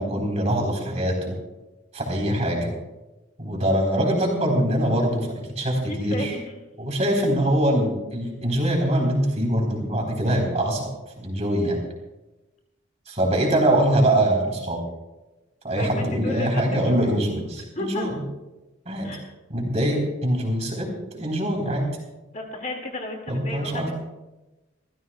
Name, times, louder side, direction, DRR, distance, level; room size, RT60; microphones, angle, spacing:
voice 1, 0.0-1.4 1.9-2.7 3.4-6.4 6.8-10.9 11.2-11.8 13.1-14.8 15.6-18.2 18.9-19.2 19.5-21.9 23.3-23.9, right 1 dB, 35° right, 1 dB, 3.8 m, -23 dB
voice 2, 5.9-6.4 15.8-17.0 17.8-18.1 19.0-19.3 22.3-23.9, left 1 dB, 35° left, 2 dB, 2.1 m, -33 dB
26.5 x 14.5 x 2.3 m, 1.0 s
head